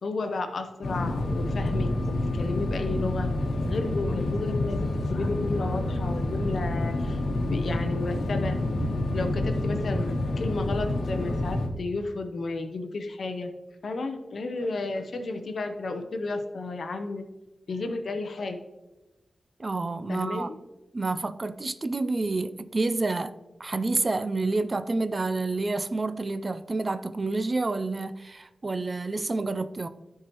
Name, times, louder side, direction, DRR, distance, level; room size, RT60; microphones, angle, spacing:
voice 1, 0.0-3.3 3.6-8.6 9.1-13.5 13.8-17.2 17.7-18.6 20.1-20.6, left 3 dB, 65° left, 0.6 m, -32 dB
sound 1, 0.8-11.7, left 1 dB, 90° left, 1.1 m, -28 dB
voice 2, 19.6-20.5 20.9-29.9, right 3 dB, 30° right, 0.4 m, -29 dB
13.5 x 4.7 x 3.0 m
wide cardioid pair, 140°, 0 cm